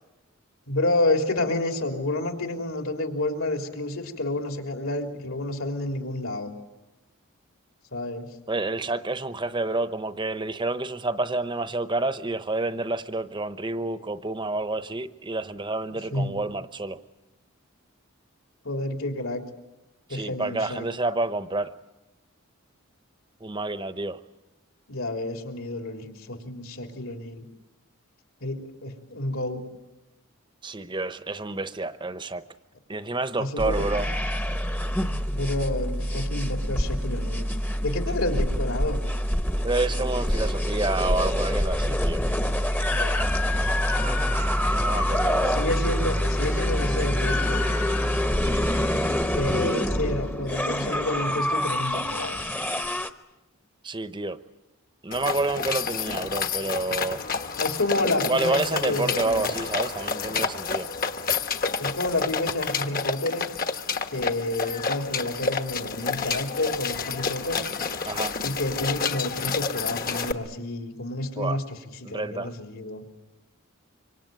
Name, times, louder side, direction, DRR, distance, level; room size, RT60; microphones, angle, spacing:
voice 1, 0.7-6.5 7.9-8.3 15.9-16.3 18.6-19.4 20.1-20.8 24.9-27.4 28.4-29.6 33.4-33.9 35.3-37.5 37.8-39.0 42.9-43.2 45.4-47.7 49.4-52.4 57.6-59.5 61.8-63.5 64.1-67.6 68.4-71.8 72.1-73.0, left 2 dB, 70° left, 4 dB, 3.5 m, -29 dB
voice 2, 8.5-17.0 20.1-21.7 23.4-24.2 30.6-32.4 32.9-34.1 39.6-42.2 44.7-45.6 53.8-54.4 55.0-57.2 58.3-60.9 68.0-68.4 71.4-71.6 72.0-72.5, right 2 dB, 20° right, 12 dB, 0.9 m, -29 dB
sound 1, 33.6-53.1, equal, 10° left, 1.0 m, -26 dB
sound 2, 55.1-70.3, left 5 dB, 40° left, 1.2 m, -29 dB
25.5 x 25.0 x 9.3 m, 1.0 s
head